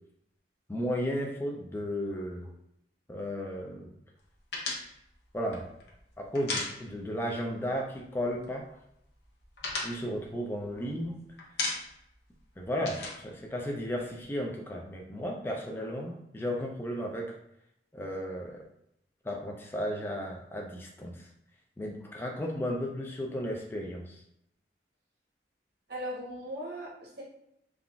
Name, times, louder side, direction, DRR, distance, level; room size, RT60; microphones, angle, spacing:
voice 1, 0.7-2.5 3.1-3.9 5.3-5.7 6.2-8.6 9.8-11.2 12.6-17.4 17.9-18.6 19.2-21.3 21.8-24.2, equal, 10° left, 0 dB, 0.3 m, -34 dB
sound 1, 4.5-7.3 7.6-7.7 8.0-8.7 9.1-11.1 11.4-12.1 12.4-14.2, left 3 dB, 75° left, 0.7 m, -36 dB
voice 2, 25.9-27.2, equal, 65° right, -4 dB, 1.1 m, -38 dB
3.7 x 2.4 x 2.2 m, 0.77 s
head